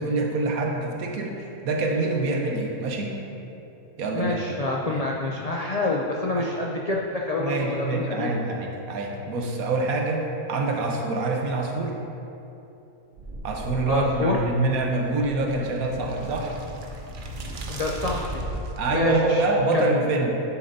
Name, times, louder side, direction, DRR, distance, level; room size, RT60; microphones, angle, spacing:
voice 1, 0.0-3.2 4.0-4.4 4.8-4.9 6.4-6.5 7.4-10.2 10.5-12.0 13.4-16.6 18.8-20.4, right 2 dB, 75° right, 1 dB, 1.4 m, -25 dB
voice 2, 4.1-8.3 13.9-14.4 17.7-18.4 18.9-19.4 19.7-19.9, left 2 dB, 80° left, -2 dB, 0.3 m, -27 dB
sound 1, 13.2-18.9, right 1 dB, 45° right, 0.7 m, -37 dB
11.0 x 6.8 x 2.7 m, 2.9 s
omnidirectional pair, 1.5 m